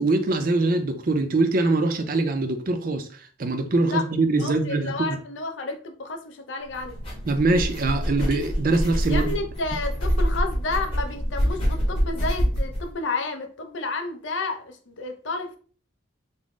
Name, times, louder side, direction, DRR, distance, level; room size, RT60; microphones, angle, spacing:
voice 1, 0.0-3.1 3.4-4.9 7.3-9.3, right 2 dB, 45° right, 0.5 m, -23 dB
voice 2, 4.4-7.0 9.1-15.6, left 3 dB, 70° left, 0.6 m, -31 dB
sound 1, 6.7-12.8, equal, 25° left, 1.1 m, -26 dB
3.8 x 2.1 x 3.6 m
head